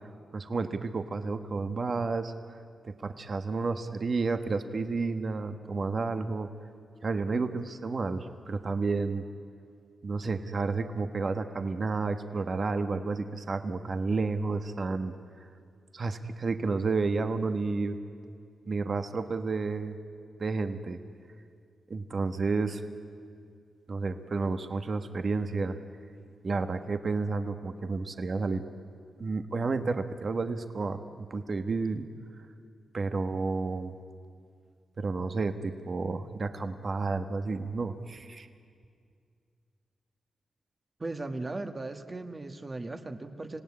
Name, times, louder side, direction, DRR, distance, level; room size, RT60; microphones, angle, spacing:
voice 1, 0.3-2.6 2.8-6.5 7.0-9.2 10.0-15.1 15.9-18.0 18.7-20.0 20.4-21.0 21.9-22.8 23.9-25.8 26.4-28.6 29.2-32.1 32.9-33.9 35.0-38.5, right 4 dB, 50° right, 8 dB, 1.3 m, -31 dB
voice 2, 41.0-43.6, right 2 dB, 30° right, 7 dB, 1.6 m, -37 dB
26.0 x 17.5 x 9.7 m, 2.2 s
cardioid pair, 80°, 0 cm